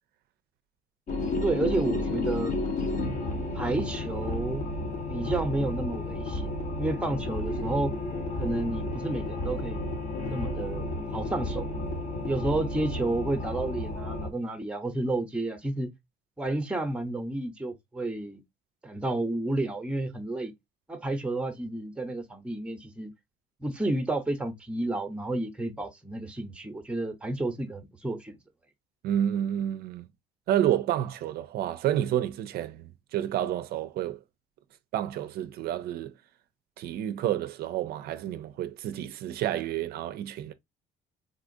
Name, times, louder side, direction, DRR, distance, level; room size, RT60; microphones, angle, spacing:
sound 1, 1.1-14.3, left 2 dB, 45° left, 1.0 m, -32 dB
voice 1, 1.4-2.5 3.5-4.6 5.1-6.5 6.8-7.9 8.4-9.9 10.3-11.7 12.2-15.9 16.4-18.4 18.8-20.5 20.9-23.1 23.6-28.3, right 2 dB, 5° right, 0.7 m, -31 dB
voice 2, 29.0-30.1 30.5-34.2 34.9-36.1 36.8-40.5, right 11 dB, 65° right, 0.4 m, -29 dB
3.8 x 2.4 x 2.5 m
cardioid pair, 110°, 17 cm